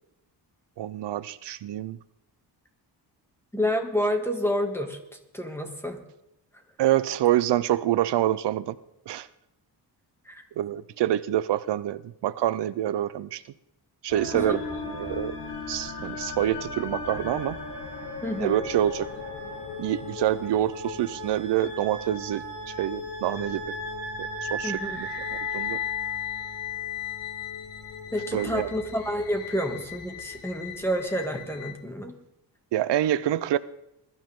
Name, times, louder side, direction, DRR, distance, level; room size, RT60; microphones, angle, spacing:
voice 1, 0.8-2.0 6.8-8.8 9.1-9.3 10.6-13.4 14.0-15.4 15.7-17.6 18.4-19.1 19.8-23.7 24.2-25.8 28.3-28.8 32.7-33.6, right 12 dB, 80° right, 15 dB, 0.7 m, -27 dB
voice 2, 3.5-5.0 5.3-6.0 10.3-10.4 14.3-14.6 18.2-18.6 24.6-25.0 28.1-32.1, equal, 5° left, 4 dB, 2.2 m, -29 dB
sound 1, 14.1-31.7, left 4 dB, 85° left, 4.8 m, -36 dB
21.0 x 13.0 x 3.7 m, 0.87 s
cardioid pair, 125°, 41 cm